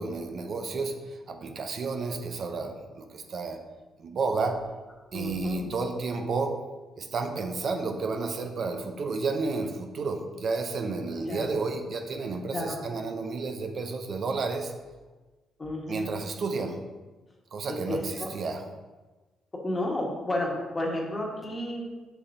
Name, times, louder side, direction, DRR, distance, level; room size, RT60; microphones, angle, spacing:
voice 1, 0.0-3.6 4.0-4.6 5.1-6.6 7.0-14.7 15.9-16.8 17.5-18.6, right 4 dB, 55° right, 5 dB, 0.6 m, -31 dB
voice 2, 5.1-5.7 11.2-11.5 12.5-12.8 15.6-16.1 17.7-18.3 19.5-21.8, left 1 dB, 25° left, -1 dB, 1.5 m, -32 dB
6.9 x 6.0 x 2.7 m, 1.2 s
cardioid pair, 90°, 0 cm